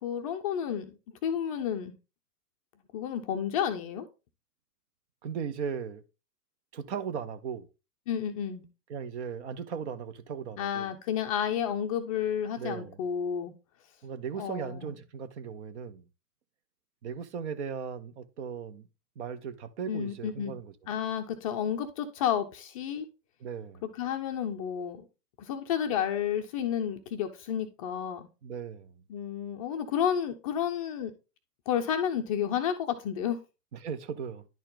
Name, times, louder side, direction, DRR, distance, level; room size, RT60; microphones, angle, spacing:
voice 1, 0.0-2.0 2.9-4.1 8.1-8.6 10.6-13.5 14.4-15.0 19.9-20.5 20.9-23.1 23.8-25.1 25.4-28.3 29.1-31.1 31.7-33.4, left 9 dB, 25° left, 0.5 m, -31 dB
voice 2, 5.2-6.0 6.7-7.7 8.9-10.9 12.6-13.0 14.0-16.0 17.0-18.9 19.2-20.7 23.4-23.8 28.4-29.0 33.8-34.4, right 7 dB, 45° right, 0.9 m, -37 dB
10.5 x 4.3 x 3.8 m
figure-of-eight pair, 110°, 47 cm